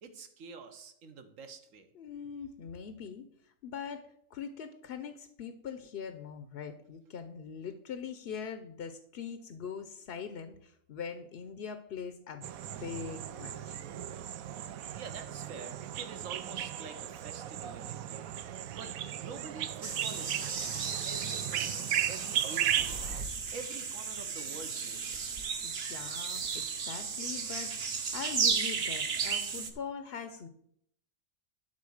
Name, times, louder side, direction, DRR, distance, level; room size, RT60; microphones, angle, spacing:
voice 1, 0.0-1.9 15.0-18.3 18.7-23.0 23.3-25.2, right 4 dB, 70° right, 8 dB, 1.4 m, -47 dB
voice 2, 1.9-12.5 12.8-13.8 25.6-30.5, left 6 dB, 55° left, 9 dB, 0.8 m, -42 dB
sound 1, 12.4-23.2, right 11 dB, 90° right, 1.1 m, -36 dB
sound 2, 19.8-29.7, right 5 dB, 50° right, 1.1 m, -34 dB
11.5 x 4.0 x 6.3 m, 0.69 s
omnidirectional pair, 1.4 m